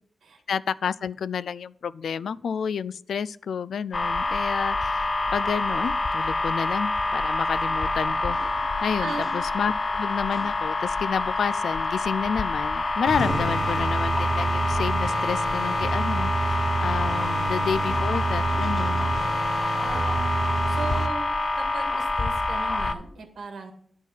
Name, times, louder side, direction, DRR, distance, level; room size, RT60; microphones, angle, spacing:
voice 1, 0.5-8.4 8.8-19.1, left 7 dB, 85° left, 17 dB, 0.3 m, -30 dB
sound 1, 3.9-22.9, left 2 dB, 35° left, 0.6 m, -26 dB
sound 2, 13.1-21.1, right 3 dB, 55° right, 0.9 m, -29 dB
voice 2, 19.8-20.2 20.7-21.3 21.5-23.7, right 4 dB, 85° right, 4 dB, 1.8 m, -37 dB
10.5 x 4.6 x 7.2 m, 0.65 s
wide cardioid pair, 125°, 0 cm